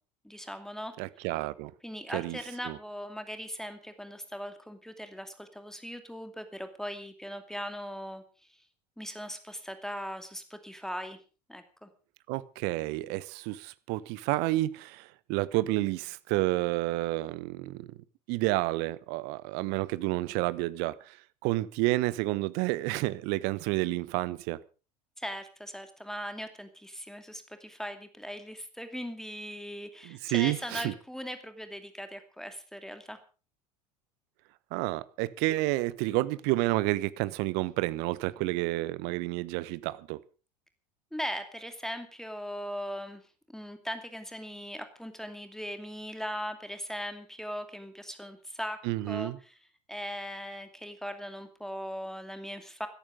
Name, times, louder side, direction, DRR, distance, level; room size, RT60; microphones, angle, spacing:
voice 1, 0.2-0.9 1.8-8.2 8.5-8.6 9.0-11.2 11.5-11.9 25.2-33.2 41.1-43.2 43.5-49.5 49.9-52.9, equal, ahead, 2.6 m, -39 dB
voice 2, 1.0-1.7 2.1-2.4 2.6-2.8 12.3-18.0 18.3-21.2 21.4-24.6 30.0-30.9 34.7-40.2 48.8-49.4, right 19 dB, 55° right, 1.1 m, -30 dB
16.5 x 14.0 x 5.1 m
figure-of-eight pair, 75°, 20 cm